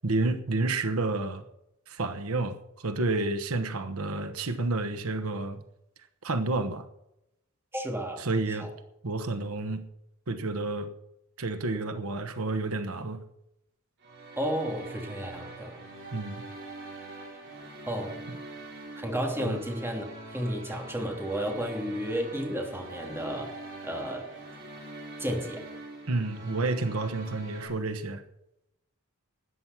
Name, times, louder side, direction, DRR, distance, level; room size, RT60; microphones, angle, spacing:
voice 1, 0.0-1.4 1.9-5.6 6.2-6.9 8.2-8.7 9.0-9.8 10.3-10.9 11.4-13.2 16.1-16.4 18.3-18.4 19.4-19.6 26.1-28.2, right 2 dB, 85° right, 9 dB, 1.2 m, -30 dB
voice 2, 7.7-8.3 8.6-8.7 14.4-15.8 17.9-18.2 18.9-20.1 20.3-23.5 23.8-24.3 25.2-25.7, equal, 10° right, 1 dB, 2.8 m, -32 dB
sound 1, 14.0-27.7, right 2 dB, 55° right, 5.0 m, -44 dB
13.5 x 9.7 x 5.9 m, 0.82 s
head